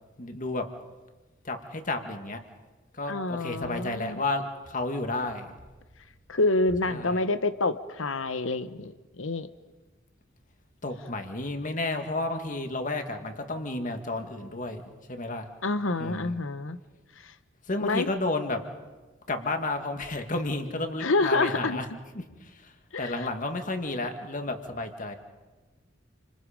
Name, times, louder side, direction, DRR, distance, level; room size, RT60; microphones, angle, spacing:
voice 1, 0.2-0.7 1.5-2.4 3.0-5.5 6.9-7.2 10.8-14.8 15.1-15.5 16.0-16.3 17.7-18.6 19.3-21.9 22.6-22.7 23.0-25.2, left 2 dB, 40° left, 6 dB, 2.0 m, -31 dB
voice 2, 3.1-4.2 6.3-9.5 15.6-16.8 17.8-18.1 21.0-21.8 22.9-23.3, left 2 dB, 85° left, 12 dB, 1.1 m, -27 dB
29.5 x 25.5 x 5.1 m, 1.2 s
head